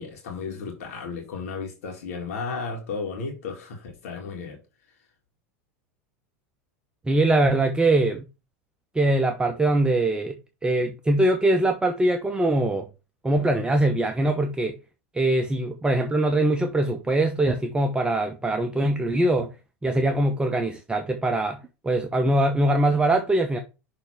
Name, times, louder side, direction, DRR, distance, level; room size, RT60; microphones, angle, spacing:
voice 1, 0.0-4.6, left 4 dB, 70° left, 1.9 m, -34 dB
voice 2, 7.1-8.3 8.9-10.4 10.6-12.9 13.2-14.8 15.1-19.5 19.8-21.6 21.8-23.6, right 1 dB, 10° right, 0.8 m, -22 dB
6.1 x 3.4 x 5.6 m
hypercardioid pair, 90°, 8 cm